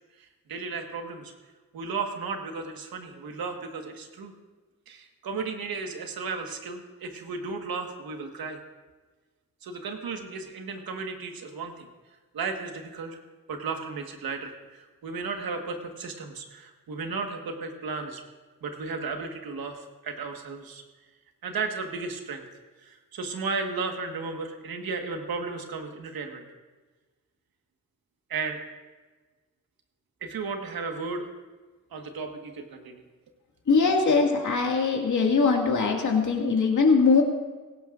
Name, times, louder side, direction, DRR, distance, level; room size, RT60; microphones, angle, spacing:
voice 1, 0.2-1.3 1.7-4.3 4.9-8.6 9.6-11.9 12.3-13.2 13.5-18.2 18.6-20.8 21.4-22.5 22.8-26.4 28.3-28.6 30.2-31.3 31.9-33.0, right 4 dB, 90° right, 4 dB, 1.6 m, -34 dB
voice 2, 33.7-37.2, left 4 dB, 55° left, 0 dB, 2.2 m, -21 dB
18.0 x 16.5 x 2.6 m, 1.3 s
cardioid pair, 80°, 35 cm